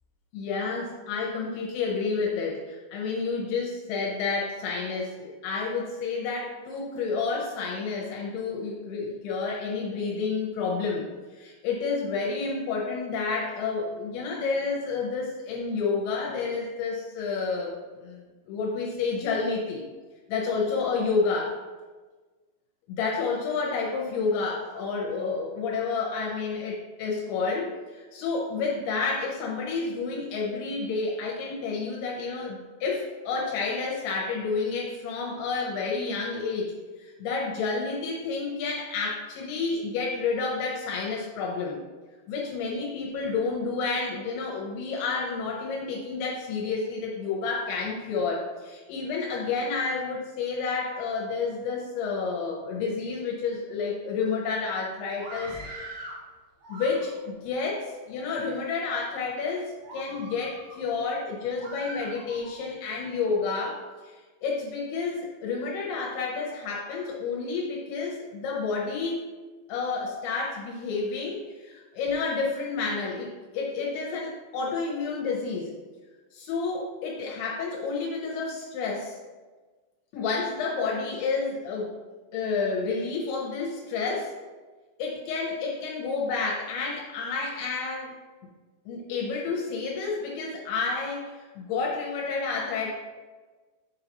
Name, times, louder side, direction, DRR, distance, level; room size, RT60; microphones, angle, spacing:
voice 1, 0.3-19.9 20.3-21.6 22.9-41.8 42.3-55.6 56.7-69.3 69.7-75.7 76.3-79.2 80.1-82.0 82.3-84.3 85.0-88.2 88.9-92.9, left 4 dB, 80° left, -2 dB, 2.8 m, -30 dB
Screaming, 55.1-56.2 56.6-57.4 58.0-58.6 59.1-59.3 59.8-60.8 61.6-62.6, right 1 dB, 60° right, 1.9 m, -42 dB
6.3 x 5.6 x 2.8 m, 1.3 s
omnidirectional pair, 4.6 m